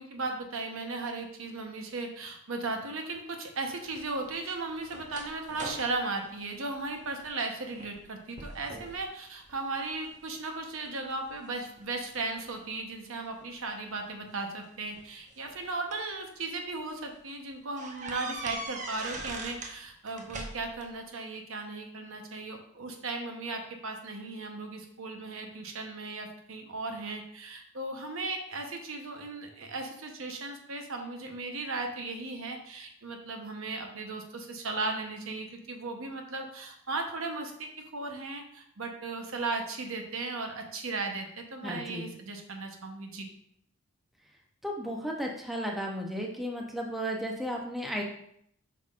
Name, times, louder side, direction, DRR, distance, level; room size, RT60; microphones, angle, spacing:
voice 1, 0.0-43.3, right 3 dB, 65° right, 3 dB, 1.0 m, -36 dB
sound 1, 3.9-7.3 7.7-8.1 8.4-9.0 9.5-10.2 10.8-12.2 13.4-13.5 14.7-16.1 16.7-16.8 17.1-17.2 17.8-19.8 20.1-20.9, right 2 dB, 35° right, 0.7 m, -42 dB
voice 2, 41.6-42.1 44.6-48.0, equal, ahead, -1 dB, 0.7 m, -34 dB
7.8 x 5.7 x 2.5 m, 0.69 s
head